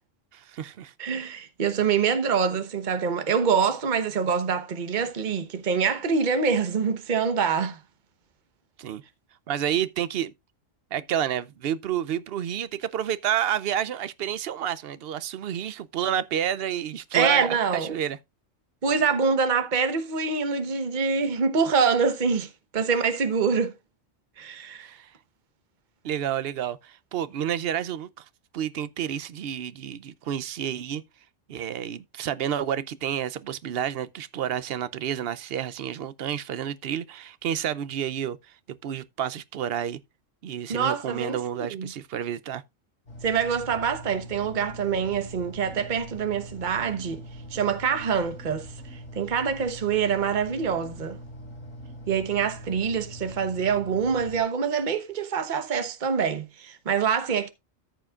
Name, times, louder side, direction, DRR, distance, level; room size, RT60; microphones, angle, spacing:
voice 1, 0.3-0.9 8.8-9.0 9.5-10.3 10.9-18.2 24.8-25.1 26.0-28.2 28.5-31.0 31.5-38.4 38.7-40.0 40.4-42.6, right 10 dB, 60° right, 0.7 m, -30 dB
voice 2, 1.0-7.8 17.1-18.0 18.8-23.7 24.4-24.9 40.7-41.4 41.7-41.9 43.2-47.2 47.5-48.7 49.2-51.2 52.1-57.5, right 6 dB, 40° right, 1.1 m, -25 dB
sound 1, 43.1-54.4, equal, 65° left, 4.1 m, -42 dB
14.0 x 7.2 x 2.4 m
omnidirectional pair, 1.3 m